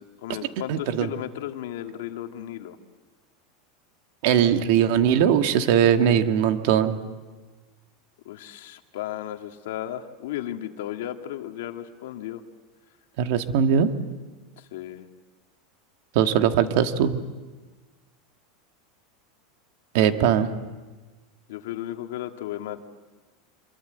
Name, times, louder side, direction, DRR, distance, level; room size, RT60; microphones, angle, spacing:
voice 1, 0.0-2.8 4.5-4.7 6.0-6.2 8.3-12.4 14.6-15.1 21.5-22.8, left 12 dB, 75° left, 5 dB, 2.0 m, -35 dB
voice 2, 0.7-1.1 4.2-7.0 13.2-13.9 16.1-17.2 19.9-20.5, right 9 dB, 60° right, 7 dB, 1.7 m, -20 dB
26.0 x 23.0 x 7.9 m, 1.3 s
supercardioid pair, 160°, 0 cm